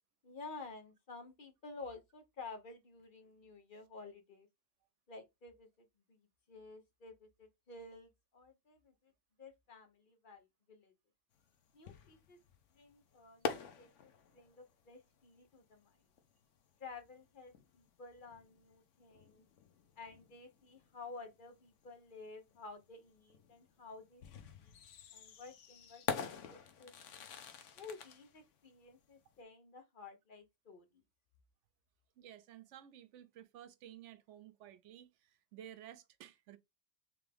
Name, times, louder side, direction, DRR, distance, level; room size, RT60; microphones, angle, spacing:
voice 1, 0.2-4.5 5.1-6.2 6.5-9.1 9.4-10.9 11.7-12.4 12.7-16.0 16.8-19.4 20.0-24.2 24.6-24.7 25.1-27.2 27.8-31.0, left 4 dB, 45° left, 1.0 m, -52 dB
sound 1, 11.4-29.4, left 7 dB, 85° left, 1.1 m, -47 dB
voice 2, 32.2-36.6, right 11 dB, 90° right, 0.9 m, -54 dB
3.5 x 3.5 x 3.4 m
omnidirectional pair, 1.2 m